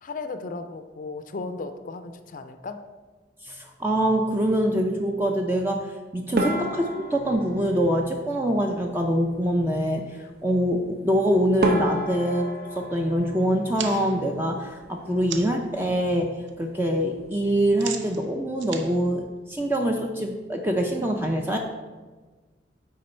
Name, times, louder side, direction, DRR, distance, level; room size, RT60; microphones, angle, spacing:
voice 1, 0.0-2.8 6.3-6.4 10.2-10.3 11.9-12.1 15.0-15.2, left 3 dB, 45° left, 9 dB, 0.4 m, -36 dB
voice 2, 3.4-10.0 10.4-12.4 12.7-21.6, equal, 10° right, 2 dB, 0.4 m, -24 dB
sound 1, 6.4-8.8 11.1-11.2 11.6-14.4 14.6-15.4 15.7-15.9 16.2-16.3 17.0-17.3, right 1 dB, 55° right, 0.9 m, -30 dB
sound 2, 13.8-15.7 16.1-16.5 16.8-20.0, right 7 dB, 85° right, 0.6 m, -39 dB
9.3 x 3.9 x 4.3 m, 1.3 s
head